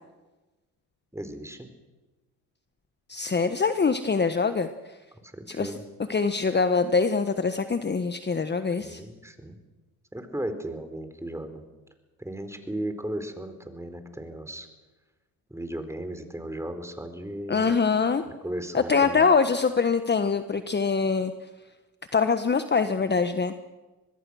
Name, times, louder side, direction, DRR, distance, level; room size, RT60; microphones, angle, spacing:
voice 1, 1.1-1.7 5.2-5.8 8.8-9.6 10.1-11.6 12.2-14.7 15.5-17.7 18.4-19.2, right 1 dB, 5° right, 8 dB, 4.3 m, -36 dB
voice 2, 3.1-4.7 5.5-5.7 6.1-9.0 17.5-18.2 18.7-21.3 22.1-23.5, left 5 dB, 25° left, 9 dB, 1.4 m, -24 dB
25.0 x 20.5 x 6.4 m, 1.2 s
hypercardioid pair, 65°, 43 cm